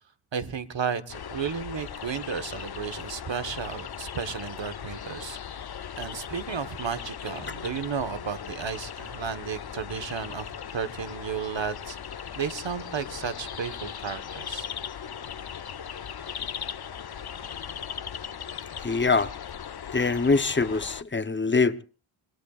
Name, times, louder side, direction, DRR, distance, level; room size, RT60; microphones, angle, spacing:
voice 1, 0.3-5.4 6.0-12.0 12.4-14.7, right 6 dB, 60° right, 1.4 m, -33 dB
sound 1, 1.1-21.0, left 8 dB, 50° left, 0.7 m, -38 dB
voice 2, 18.8-19.3 19.9-21.8, left 4 dB, 25° left, 0.9 m, -23 dB
26.0 x 21.0 x 2.5 m
wide cardioid pair, 85°, 49 cm